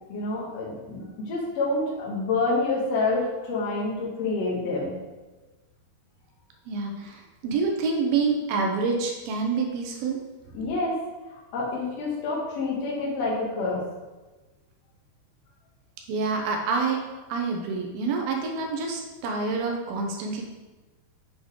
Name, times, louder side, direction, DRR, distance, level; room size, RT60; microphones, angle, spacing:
voice 1, 0.1-4.9 10.5-11.0 11.5-13.8, left 3 dB, 65° left, -5 dB, 1.6 m, -27 dB
voice 2, 6.7-10.2 16.1-17.0 17.3-20.4, right 4 dB, 75° right, 1 dB, 2.4 m, -27 dB
8.0 x 3.9 x 4.7 m, 1.2 s
omnidirectional pair, 4.9 m